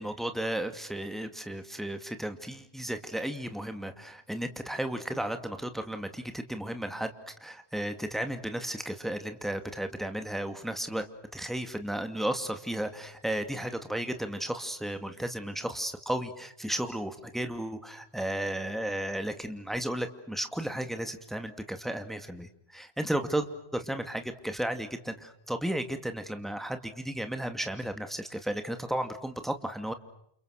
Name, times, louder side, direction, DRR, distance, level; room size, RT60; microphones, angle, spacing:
voice 1, 0.0-11.1 11.3-23.5 23.7-29.9, right 1 dB, ahead, 7 dB, 2.4 m, -34 dB
30.0 x 29.5 x 6.6 m, 0.71 s
omnidirectional pair, 1.1 m